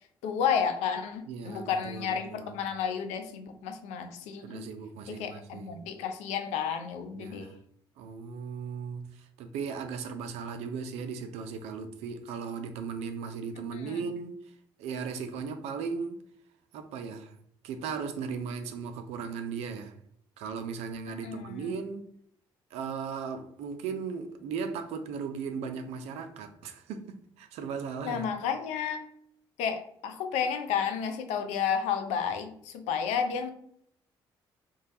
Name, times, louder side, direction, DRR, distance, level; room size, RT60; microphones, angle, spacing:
voice 1, 0.2-4.7 5.1-7.5 13.7-14.0 21.2-21.7 28.0-29.0 29.6-33.5, left 7 dB, 60° left, 0.4 m, -31 dB
voice 2, 1.3-2.6 4.4-5.8 7.1-7.6 8.0-14.4 14.8-16.2 16.7-17.3 17.6-19.9 20.4-22.1 22.7-28.3, right 5 dB, 60° right, 0.4 m, -37 dB
3.1 x 2.2 x 2.6 m
figure-of-eight pair, 45°, 12 cm